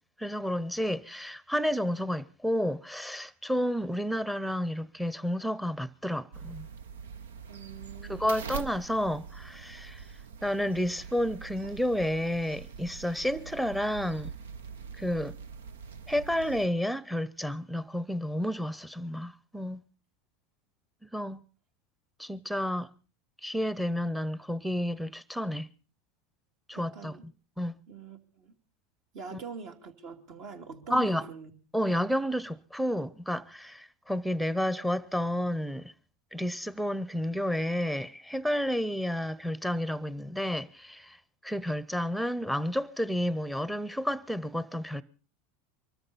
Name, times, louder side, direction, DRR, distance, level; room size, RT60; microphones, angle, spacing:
voice 1, 0.2-6.7 8.1-10.0 10.4-14.3 15.0-15.4 16.1-19.8 21.1-21.4 22.2-22.9 23.4-25.7 26.7-27.3 27.6-27.8 29.3-29.4 30.9-31.2 31.7-35.9 36.3-41.2 41.4-45.0, equal, ahead, 0.8 m, -31 dB
sound 1, 6.3-16.7, right 6 dB, 85° right, 0.8 m, -43 dB
voice 2, 7.5-8.2 26.7-27.3 27.9-28.5 29.1-31.5, right 5 dB, 55° right, 2.7 m, -43 dB
24.0 x 13.5 x 4.2 m
hypercardioid pair, 95°, 0 cm